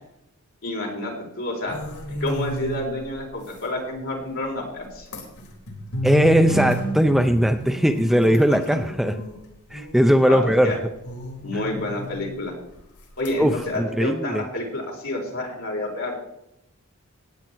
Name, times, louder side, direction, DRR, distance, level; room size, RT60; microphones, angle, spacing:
voice 1, 0.6-1.8 2.2-5.1 8.5-8.8 10.2-10.8 11.4-12.5 13.2-16.1, left 1 dB, 60° left, -2 dB, 4.6 m, -29 dB
sound 1, 1.7-3.1 3.5-3.6 4.2-4.3 4.9-9.3 9.7-10.5 11.0-12.3 12.8-13.0 13.2-13.8, left 1 dB, 80° left, 4.0 m, -32 dB
voice 2, 6.0-9.2 9.7-10.7 11.5-11.6 13.4-14.4, equal, ahead, 6 dB, 0.5 m, -19 dB
17.0 x 9.6 x 4.6 m, 0.84 s
head